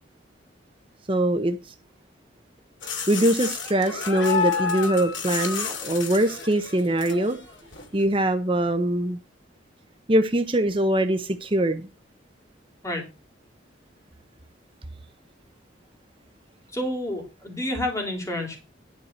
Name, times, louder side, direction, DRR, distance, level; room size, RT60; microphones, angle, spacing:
voice 1, 1.1-1.7 3.1-7.4 7.9-9.2 10.1-11.9, right 1 dB, 25° right, 8 dB, 0.8 m, -23 dB
sound 1, 2.8-7.9, left 6 dB, 80° left, 2.5 m, -30 dB
voice 2, 16.7-18.6, left 1 dB, 15° left, 2 dB, 3.1 m, -29 dB
11.5 x 4.6 x 6.5 m, 0.29 s
head